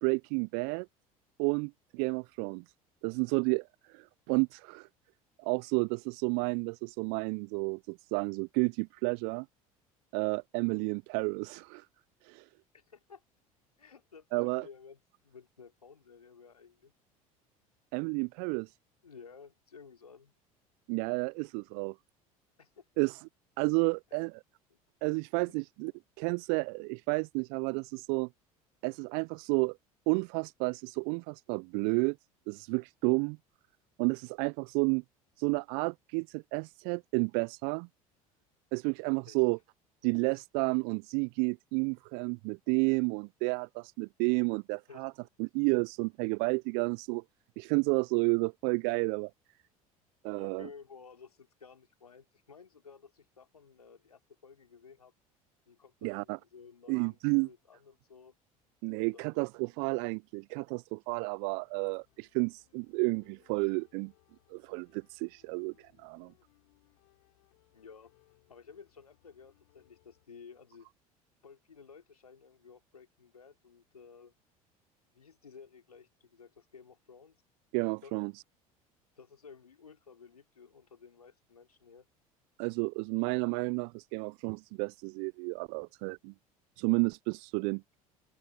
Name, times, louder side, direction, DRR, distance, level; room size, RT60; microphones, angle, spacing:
voice 1, 0.0-0.9 1.4-2.6 3.0-4.9 5.4-9.5 10.1-11.9 12.2-12.5 14.3-14.7 17.9-18.7 20.9-22.0 23.0-23.2 23.6-24.3 25.0-25.9 26.2-28.3 28.8-29.8 30.1-32.2 32.5-33.4 34.0-35.0 35.4-37.9 38.7-39.6 40.0-45.1 45.4-47.2 47.6-49.3 50.2-50.7 56.0-56.4 56.9-57.5 58.8-64.1 64.5-66.3 77.7-78.3 82.6-86.3 86.8-87.8, right 39 dB, 55° right, 0.6 m, -31 dB
voice 2, 12.7-13.2 13.8-16.9 19.0-20.3 22.6-23.1 24.1-24.2 24.7-24.8 25.5-25.6 39.3-39.4 40.3-40.4 44.9-45.0 50.4-55.1 55.7-58.4 59.0-59.5 67.7-68.1 68.5-70.9 71.4-74.3 75.1-77.4 78.0-78.1 79.2-82.1, left 6 dB, 85° left, 3.4 m, -54 dB
sound 1, 61.5-70.3, left 21 dB, 65° left, 6.3 m, -69 dB
open air
figure-of-eight pair, 65°, 19 cm